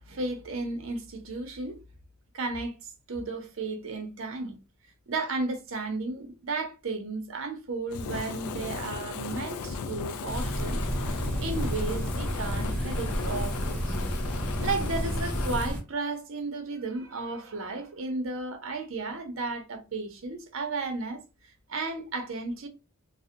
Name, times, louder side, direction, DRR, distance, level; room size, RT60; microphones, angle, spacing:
voice 1, 0.1-1.8 2.3-2.7 3.1-4.6 5.1-10.8 11.4-13.9 14.6-21.2 21.7-22.7, right 3 dB, 65° right, 0.6 m, -34 dB
Fire, 7.9-15.7, left 5 dB, 85° left, 0.3 m, -36 dB
sound 1, 10.3-15.8, equal, 5° left, 0.8 m, -31 dB
2.6 x 2.1 x 2.3 m
head